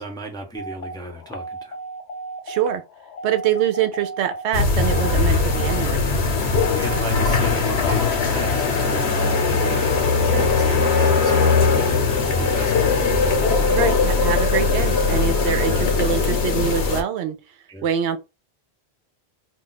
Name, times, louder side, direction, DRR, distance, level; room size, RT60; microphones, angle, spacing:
voice 1, 0.0-1.8 6.8-13.2 13.6-13.8 15.7-15.9 17.7-17.9, right 2 dB, 5° left, 0.4 m, -35 dB
sound 1, 0.6-12.5, right 2 dB, 55° left, 0.6 m, -35 dB
voice 2, 2.5-2.8 3.2-6.1 10.3-10.5 13.7-17.4 17.8-18.2, right 9 dB, 85° right, 0.9 m, -24 dB
sound 2, 4.5-17.0, left 4 dB, 70° left, 1.0 m, -20 dB
2.4 x 2.2 x 3.9 m
omnidirectional pair, 1.1 m